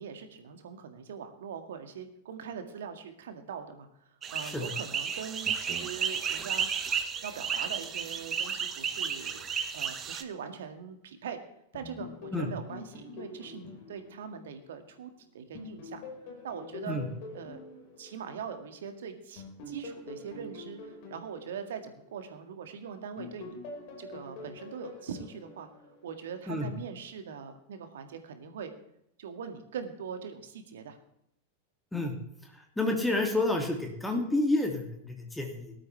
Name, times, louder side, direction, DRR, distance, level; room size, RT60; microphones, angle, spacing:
voice 1, 0.0-6.7 7.2-9.4 9.7-11.4 11.7-16.0 16.4-17.0 17.3-17.6 18.0-23.6 24.0-28.7 29.2-31.0, right 7 dB, 60° right, 7 dB, 1.9 m, -42 dB
sound 1, 4.2-10.2, right 7 dB, 25° right, 1.1 m, -33 dB
sound 2, 11.7-15.1 15.5-18.8 19.4-22.7 23.2-26.4, left 3 dB, 45° left, 4.9 m, -46 dB
voice 2, 32.8-35.7, left 2 dB, 5° left, 2 dB, 2.4 m, -29 dB
18.5 x 12.5 x 3.3 m, 0.76 s
figure-of-eight pair, 90°, 0 cm